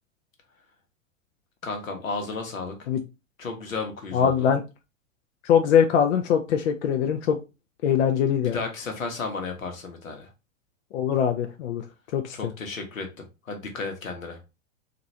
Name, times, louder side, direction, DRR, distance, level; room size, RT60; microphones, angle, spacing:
voice 1, 1.6-2.8 3.4-4.5 8.4-10.3 12.3-14.4, left 4 dB, 80° left, 4 dB, 1.0 m, -33 dB
voice 2, 4.1-4.6 5.4-7.4 7.8-8.6 10.9-11.8 12.1-12.5, left 8 dB, 60° left, 4 dB, 0.5 m, -22 dB
2.9 x 2.5 x 2.6 m, 0.27 s
figure-of-eight pair, 100°, 39 cm